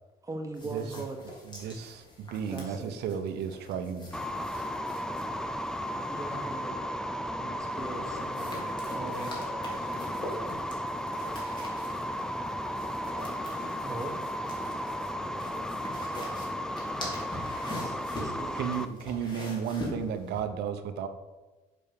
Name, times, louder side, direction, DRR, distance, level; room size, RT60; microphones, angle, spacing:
voice 1, 0.2-1.2 2.5-2.9 6.1-6.8 7.3-8.5 8.9-9.4 13.8-14.2 17.6-18.6, right 3 dB, 20° right, 3 dB, 1.6 m, -40 dB
sound 1, 0.5-6.7 7.7-20.4, left 1 dB, 25° left, 3.4 m, -44 dB
voice 2, 1.5-4.1 18.6-21.1, right 7 dB, 75° right, 8 dB, 1.0 m, -33 dB
sound 2, 4.1-18.9, equal, 5° left, 0.5 m, -34 dB
voice 3, 7.8-10.3, left 1 dB, 75° left, -1 dB, 2.6 m, -46 dB
7.4 x 6.5 x 6.8 m, 1.2 s
cardioid pair, 110°, 17 cm